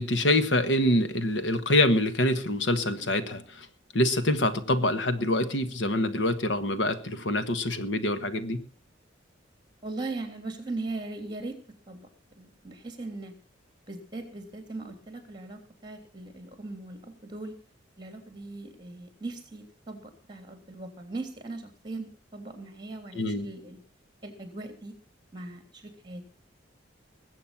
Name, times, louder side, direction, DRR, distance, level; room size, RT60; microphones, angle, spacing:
voice 1, 0.0-3.7 3.9-8.6 23.1-23.5, left 1 dB, 65° left, 10 dB, 1.4 m, -25 dB
voice 2, 9.8-11.6 11.9-12.1 12.4-13.3 13.9-17.5 18.0-23.8 24.2-25.0 25.3-26.2, right 2 dB, 25° right, 6 dB, 3.4 m, -39 dB
21.0 x 8.3 x 5.9 m, 0.39 s
head